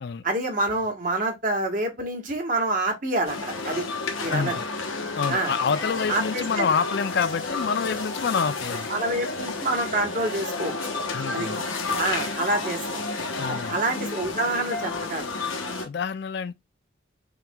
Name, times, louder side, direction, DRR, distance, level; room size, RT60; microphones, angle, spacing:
voice 1, 0.2-3.9 4.2-4.6 5.3-5.5 6.1-6.7 8.9-10.9 11.3-11.5 12.0-12.8 13.5-15.3, right 2 dB, 45° right, 1.3 m, -27 dB
sound 1, 3.3-15.9, left 3 dB, 85° left, 1.1 m, -31 dB
voice 2, 4.3-4.7 5.1-8.9 11.1-11.6 13.4-13.8 15.8-16.5, left 6 dB, 55° left, 0.4 m, -27 dB
5.8 x 3.0 x 2.3 m
head